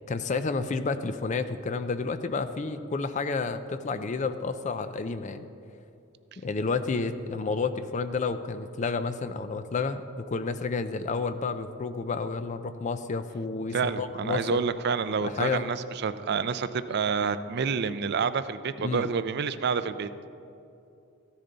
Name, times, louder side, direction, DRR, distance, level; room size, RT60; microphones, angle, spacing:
voice 1, 0.1-5.5 6.4-14.6 15.2-15.7 18.8-19.1, left 4 dB, 35° left, 11 dB, 0.4 m, -30 dB
voice 2, 13.7-20.1, right 5 dB, 50° right, 13 dB, 0.4 m, -28 dB
14.5 x 10.0 x 4.0 m, 2.7 s
head